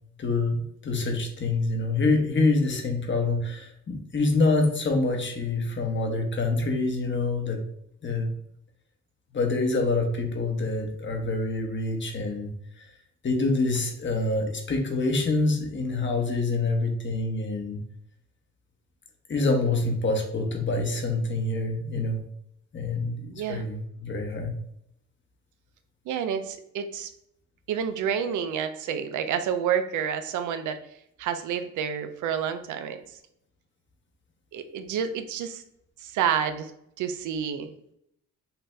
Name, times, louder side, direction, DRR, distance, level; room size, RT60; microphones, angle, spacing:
voice 1, 0.2-7.6 8.0-8.3 9.3-12.9 13.2-17.8 19.3-22.2 22.7-24.5, left 3 dB, 40° left, 3 dB, 1.1 m, -26 dB
voice 2, 23.3-23.6 26.1-27.1 27.7-30.8 31.2-33.0 34.5-35.6 36.0-36.7 37.0-37.7, right 8 dB, 80° right, 9 dB, 0.6 m, -29 dB
5.7 x 2.7 x 3.3 m, 0.74 s
cardioid pair, 90°, 30 cm